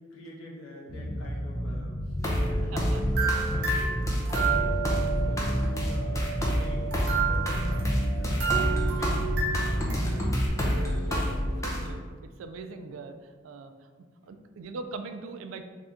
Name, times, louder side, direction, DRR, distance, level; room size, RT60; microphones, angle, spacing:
voice 1, 0.0-3.9 5.2-8.6 9.0-10.5 14.2-14.4, equal, 85° left, -3 dB, 0.9 m, -46 dB
Bass guitar, 0.9-10.5, equal, 50° left, 0.8 m, -31 dB
sound 1, 2.2-11.9, equal, 15° left, 0.5 m, -29 dB
voice 2, 2.7-3.0 4.3-4.9 11.0-12.0 12.4-13.9 14.3-15.6, right 3 dB, 85° right, 8 dB, 0.3 m, -41 dB
sound 2, 3.1-5.1 6.9-9.9, right 6 dB, 55° right, 0.9 m, -31 dB
3.3 x 2.7 x 3.6 m, 1.5 s
head